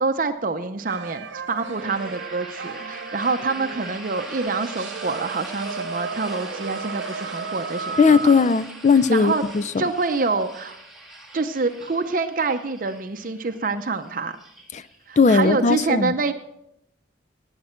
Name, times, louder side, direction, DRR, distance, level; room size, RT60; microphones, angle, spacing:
voice 1, 0.0-8.2 9.1-9.4 9.8-10.8 11.3-14.3 15.1-16.3, right 4 dB, 45° right, 0.6 m, -26 dB
sound 1, 0.8-8.5, right 5 dB, 85° right, 0.9 m, -34 dB
sound 2, 1.5-15.3, right 1 dB, ahead, 1.9 m, -42 dB
voice 2, 8.0-9.8 14.7-14.8 15.2-16.1, left 4 dB, 40° left, 0.4 m, -18 dB
18.0 x 8.8 x 4.4 m
head